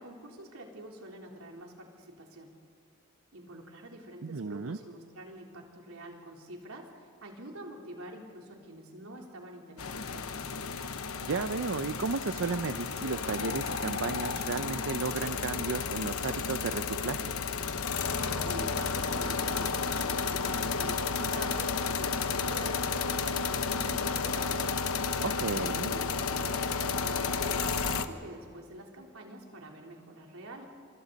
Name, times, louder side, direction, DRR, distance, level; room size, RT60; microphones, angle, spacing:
voice 1, 0.0-2.7 3.3-10.8 18.1-24.7 25.6-30.7, right 1 dB, 90° right, 0 dB, 3.6 m, -46 dB
voice 2, 4.2-4.8 11.2-17.3 25.2-25.9, right 4 dB, 65° right, 10 dB, 0.6 m, -33 dB
sound 1, 9.8-28.1, left 5 dB, 90° left, 1.1 m, -32 dB
27.5 x 25.0 x 4.1 m, 2.5 s
head